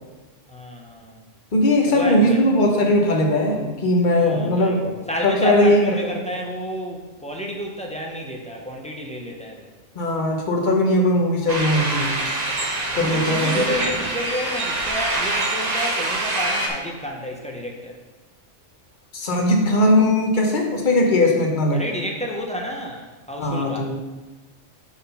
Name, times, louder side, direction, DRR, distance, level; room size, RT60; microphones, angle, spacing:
voice 1, 0.5-1.2 1.9-2.4 4.1-4.8 5.1-9.8 12.8-18.0 21.7-23.9, equal, 5° left, -1 dB, 0.7 m, -30 dB
voice 2, 1.5-6.2 9.9-12.2 12.9-13.7 19.1-21.8 23.4-24.0, left 1 dB, 40° left, 1 dB, 1.1 m, -19 dB
sound 1, 11.5-16.7, right 2 dB, 35° right, 1.0 m, -25 dB
6.2 x 3.9 x 5.6 m, 1.2 s
omnidirectional pair, 1.3 m